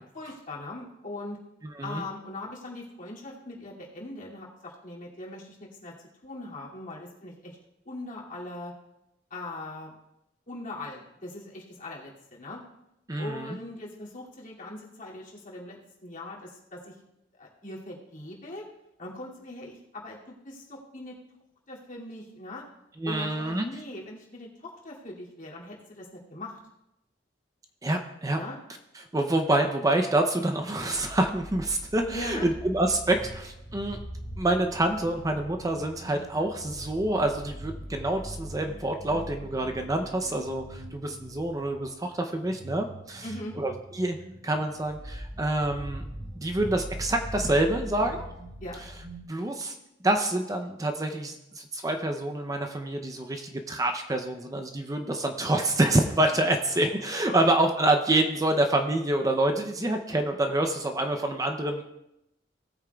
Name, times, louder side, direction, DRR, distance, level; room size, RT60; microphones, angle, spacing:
voice 1, 0.1-1.4 1.8-7.6 7.8-8.7 9.3-10.0 10.5-12.6 13.2-17.0 17.4-18.7 19.0-21.2 21.7-22.6 23.0-26.6 28.3-28.6 32.1-32.5 43.2-43.6 48.6-48.8, left 2 dB, 45° left, -4 dB, 2.5 m, -40 dB
voice 2, 1.6-2.0 13.1-13.6 23.0-23.7 27.8-28.4 28.9-34.0 34.4-43.3 43.6-44.2 44.4-46.0 46.4-48.3 49.3-49.8 50.0-61.8, right 1 dB, 20° right, 5 dB, 0.6 m, -27 dB
sound 1, 30.9-49.2, equal, 50° right, 2.9 m, -42 dB
18.0 x 8.7 x 2.3 m, 0.88 s
head